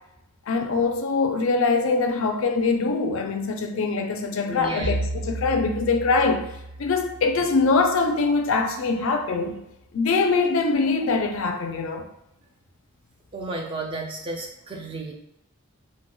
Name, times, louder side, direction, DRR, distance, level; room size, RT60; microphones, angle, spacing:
voice 1, 0.5-6.5 6.8-9.6 9.9-12.1, left 4 dB, 65° left, 0.4 m, -23 dB
voice 2, 4.5-4.9 13.3-15.1, right 2 dB, 25° right, 0.3 m, -32 dB
Bowed string instrument, 4.8-9.0, right 1 dB, 55° right, 0.6 m, -34 dB
4.3 x 2.2 x 2.2 m
head